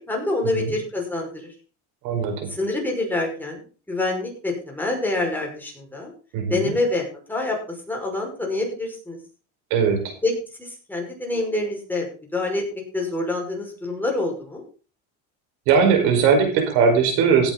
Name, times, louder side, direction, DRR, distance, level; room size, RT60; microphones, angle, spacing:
voice 1, 0.0-1.5 2.5-6.1 6.5-9.2 10.2-10.3 10.6-14.6, left 2 dB, 5° left, 0 dB, 5.6 m, -26 dB
voice 2, 2.0-2.5 6.3-6.7 9.7-10.1 15.7-17.5, right 6 dB, 80° right, 5 dB, 5.2 m, -19 dB
17.0 x 9.1 x 4.1 m, 0.37 s
cardioid pair, 130°, 35 cm